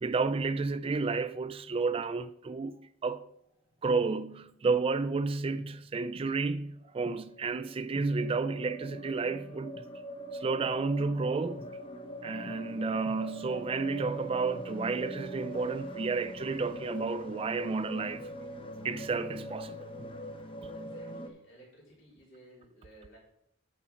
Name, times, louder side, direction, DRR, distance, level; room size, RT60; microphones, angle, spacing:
voice 1, 0.0-2.8 3.0-3.3 3.8-9.8 10.4-11.6 12.2-18.3 18.8-19.9, right 4 dB, 30° right, 0.3 m, -31 dB
sound 1, 4.6-4.8 5.5-5.6 6.1-6.2 6.8-21.3, equal, 25° left, 0.8 m, -42 dB
voice 2, 20.7-23.2, right 1 dB, 75° left, 4.0 m, -56 dB
9.8 x 5.9 x 4.4 m
head